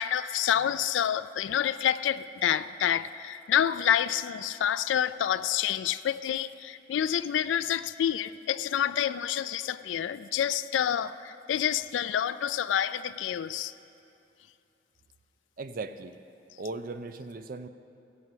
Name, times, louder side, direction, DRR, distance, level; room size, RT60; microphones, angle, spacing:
voice 1, 0.0-13.7, left 9 dB, 85° left, 14 dB, 0.3 m, -28 dB
voice 2, 15.6-16.2 16.6-17.7, right 3 dB, 50° right, 10 dB, 0.4 m, -37 dB
16.0 x 7.8 x 5.5 m, 2.7 s
head